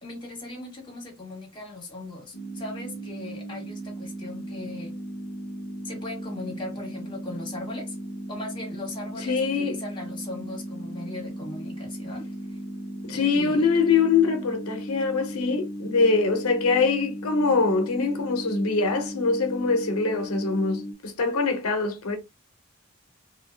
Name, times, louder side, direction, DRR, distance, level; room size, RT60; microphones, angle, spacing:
voice 1, 0.0-4.9 5.8-7.9 8.3-12.6 13.1-13.8, left 2 dB, 20° left, 1.1 m, -39 dB
sound 1, 2.3-20.9, right 1 dB, 55° left, 0.6 m, -36 dB
voice 2, 9.2-9.8 13.0-22.2, left 4 dB, 90° left, 0.6 m, -23 dB
2.5 x 2.2 x 3.1 m
head